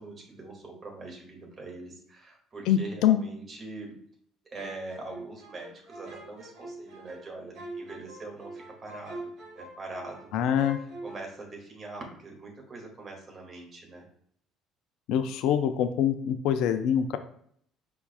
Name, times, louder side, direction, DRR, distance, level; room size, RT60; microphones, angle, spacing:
voice 1, 0.0-4.0 4.5-9.2 9.6-10.5 11.0-14.0, right 2 dB, 35° right, 0 dB, 2.0 m, -43 dB
voice 2, 2.7-3.2 10.3-10.8 15.1-17.2, left 9 dB, 60° left, 9 dB, 0.4 m, -24 dB
sound 1, 4.5-10.3 10.5-11.2, right 2 dB, 55° right, 2.1 m, -44 dB
5.2 x 4.5 x 2.3 m, 0.63 s
figure-of-eight pair, 55°, 0 cm